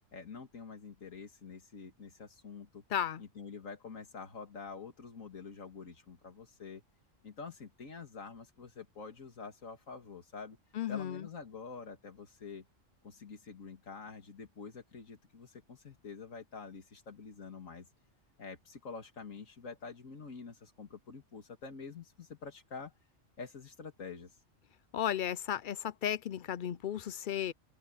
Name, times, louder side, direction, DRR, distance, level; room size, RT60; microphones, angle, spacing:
voice 1, 0.1-2.8 3.2-6.8 7.2-10.6 10.9-12.6 13.0-17.9 18.4-22.9 23.4-24.4, left 5 dB, 85° left, 2.4 m, -47 dB
voice 2, 2.9-3.2 10.7-11.3 24.9-27.5, left 10 dB, 55° left, 0.5 m, -34 dB
omnidirectional pair, 1.3 m